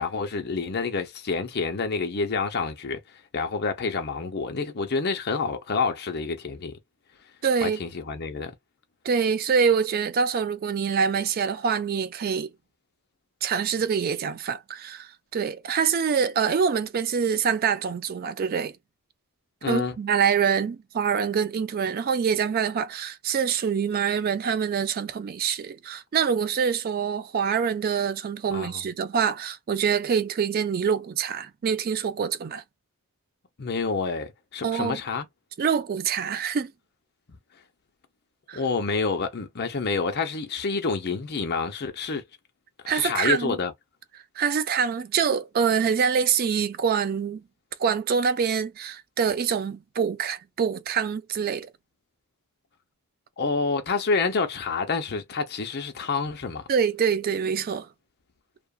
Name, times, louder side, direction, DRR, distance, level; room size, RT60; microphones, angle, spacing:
voice 1, 0.0-3.0 3.3-6.8 7.6-8.5 19.6-20.0 28.5-28.8 33.6-35.3 38.5-42.2 42.8-43.7 53.4-56.7, left 4 dB, 50° left, 0.7 m, -28 dB
voice 2, 7.4-7.8 9.0-12.5 13.4-18.8 19.6-32.6 34.6-35.0 35.6-36.7 38.5-38.6 42.9-43.5 44.4-47.4 47.8-51.7 56.7-57.9, right 6 dB, 45° right, 0.3 m, -25 dB
2.8 x 2.5 x 2.3 m
head